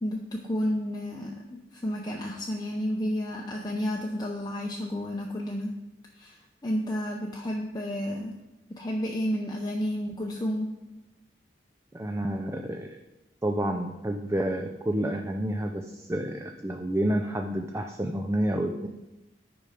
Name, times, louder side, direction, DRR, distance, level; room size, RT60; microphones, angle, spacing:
voice 1, 0.0-5.7 6.1-8.4 8.7-10.7, equal, 25° left, -1 dB, 0.7 m, -31 dB
voice 2, 11.9-13.0 13.4-18.9, right 1 dB, 15° right, 4 dB, 0.5 m, -29 dB
9.5 x 5.4 x 5.0 m, 1.0 s
head